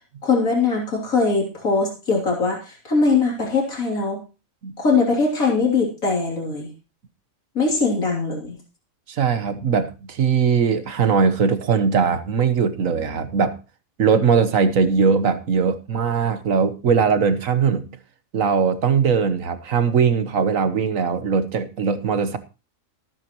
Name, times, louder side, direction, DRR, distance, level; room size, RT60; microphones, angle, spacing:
voice 1, 0.2-4.2 4.8-6.7 7.6-8.6, left 4 dB, 85° left, 3.6 m, -21 dB
voice 2, 9.1-13.5 14.0-17.9 18.3-22.4, right 6 dB, 75° right, 1.5 m, -20 dB
21.0 x 9.0 x 3.0 m
omnidirectional pair, 1.4 m